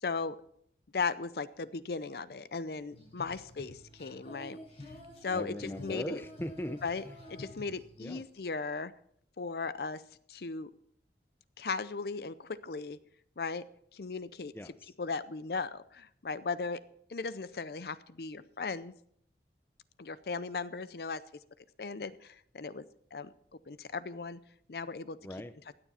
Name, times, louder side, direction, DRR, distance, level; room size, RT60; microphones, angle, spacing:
voice 1, 0.0-0.4 0.9-4.6 5.2-6.2 6.8-7.0 7.3-8.9 9.4-10.0 10.3-10.7 11.6-13.0 13.4-13.6 13.9-14.5 15.0-16.8 17.1-18.9 20.0-21.2 21.8-22.9 23.1-23.3 23.7-24.4 24.7-25.2, left 4 dB, 60° left, 15 dB, 0.6 m, -37 dB
Female singing, 2.9-8.4, left 1 dB, 35° left, 6.3 m, -49 dB
voice 2, 5.3-7.1 8.0-8.2 14.5-14.9 25.2-25.5, left 1 dB, 15° left, 10 dB, 0.5 m, -40 dB
16.0 x 9.8 x 4.2 m, 0.66 s
head